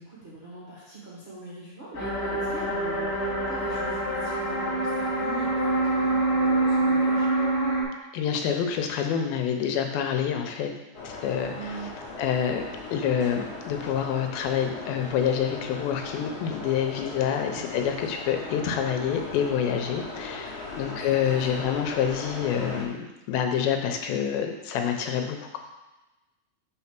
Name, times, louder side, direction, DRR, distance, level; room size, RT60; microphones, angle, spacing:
voice 1, 0.0-7.3 11.5-11.9 17.5-17.8 20.8-21.6, right 3 dB, 75° right, -9 dB, 0.6 m, -42 dB
sound 1, 1.9-7.8, right 2 dB, 35° left, 1.7 m, -25 dB
voice 2, 8.1-10.7 11.0-11.6 12.2-25.6, left 8 dB, 85° left, 5 dB, 2.6 m, -27 dB
sound 2, 10.9-22.9, left 3 dB, 65° left, 2.4 m, -39 dB
5.5 x 3.9 x 5.9 m, 1.0 s
omnidirectional pair, 4.1 m